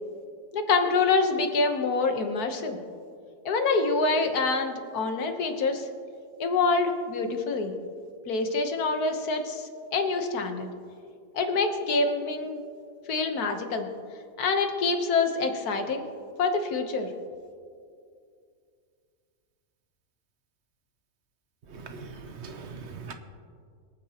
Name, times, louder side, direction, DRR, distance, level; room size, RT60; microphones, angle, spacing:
voice 1, 0.5-2.8 3.4-5.9 6.4-7.7 8.3-10.7 11.3-12.6 13.1-13.9 14.4-16.0 16.4-17.1, left 3 dB, 85° left, 5 dB, 1.6 m, -26 dB
voice 2, 21.8-23.1, right 4 dB, 55° right, 7 dB, 1.1 m, -41 dB
24.5 x 9.1 x 2.9 m, 2.3 s
omnidirectional pair, 1.6 m